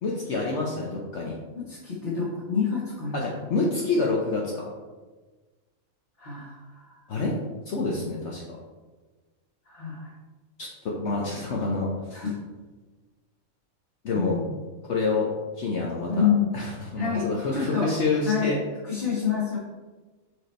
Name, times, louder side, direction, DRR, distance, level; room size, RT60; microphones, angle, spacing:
voice 1, 0.0-1.3 3.1-4.7 7.1-7.4 7.7-8.6 10.6-12.2 14.0-14.4 14.8-15.3 15.6-16.3 16.5-18.6, left 3 dB, 60° left, -2 dB, 1.0 m, -27 dB
voice 2, 1.6-3.4 6.2-7.1 9.6-10.1 12.1-12.4 14.1-14.5 16.1-16.5 17.0-17.9 18.2-18.5 18.8-19.6, left 7 dB, 40° left, -8 dB, 1.5 m, -28 dB
4.9 x 4.9 x 4.3 m, 1.3 s
omnidirectional pair, 1.4 m